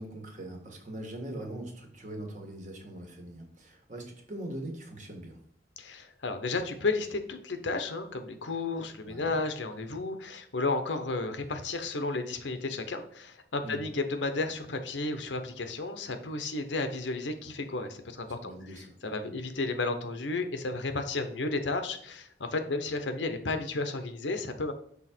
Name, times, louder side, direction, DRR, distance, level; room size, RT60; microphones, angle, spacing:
voice 1, 0.0-5.4 9.0-9.4 13.6-13.8 18.4-19.0 19.2-19.3, right 1 dB, 45° right, 2 dB, 1.5 m, -41 dB
voice 2, 5.8-24.7, left 3 dB, 90° left, 8 dB, 0.8 m, -33 dB
6.2 x 3.6 x 4.4 m, 0.68 s
head